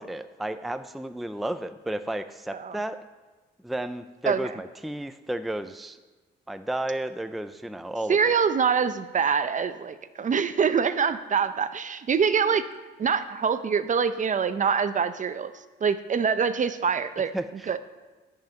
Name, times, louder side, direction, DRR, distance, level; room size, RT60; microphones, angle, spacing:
voice 1, 0.0-3.0 3.6-6.0 6.5-8.3 12.5-12.6 17.3-17.7, right 1 dB, ahead, 10 dB, 0.5 m, -32 dB
voice 2, 4.2-4.6 8.1-12.6 13.0-15.5 15.8-17.3 17.7-17.8, right 6 dB, 40° right, 12 dB, 0.7 m, -25 dB
11.5 x 5.8 x 9.0 m, 1.3 s
cardioid pair, 90°, 20 cm